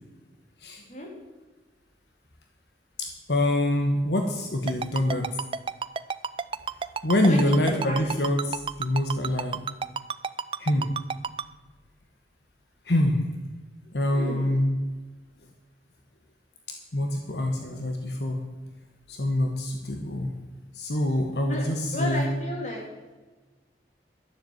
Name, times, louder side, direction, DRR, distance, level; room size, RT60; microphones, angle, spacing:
voice 1, 3.0-5.3 7.0-9.6 10.6-10.9 12.9-13.2 13.9-14.8 16.9-18.4 19.1-20.3 20.7-22.2, left 1 dB, 70° left, 3 dB, 1.3 m, -25 dB
Ringtone, 4.7-11.4, right 5 dB, 30° right, 0.3 m, -30 dB
voice 2, 7.2-8.0 14.1-14.5 21.5-21.6 21.9-22.9, left 1 dB, 40° left, 0 dB, 3.2 m, -33 dB
12.5 x 7.4 x 7.9 m, 1.2 s
head